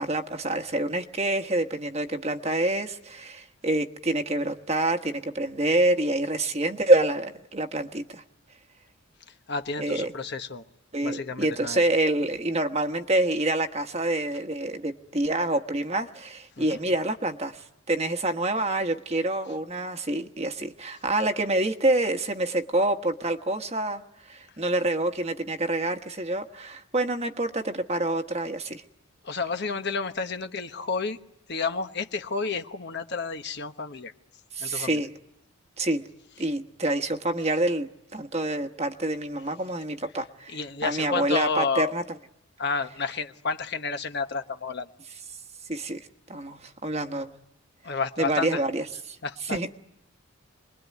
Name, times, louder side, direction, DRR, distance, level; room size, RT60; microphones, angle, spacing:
voice 1, 0.0-8.2 9.8-10.1 10.9-28.8 34.5-35.1 35.8-36.1 36.4-42.0 45.7-47.3 48.2-49.2 49.4-49.7, right 2 dB, 30° right, 6 dB, 1.3 m, -27 dB
voice 2, 9.5-10.7 11.0-11.8 16.6-16.8 29.2-31.2 31.5-34.1 34.6-35.0 40.5-41.9 42.6-44.9 47.8-48.6 49.2-49.6, left 4 dB, 50° left, 7 dB, 1.2 m, -30 dB
28.0 x 22.0 x 9.4 m, 0.84 s
head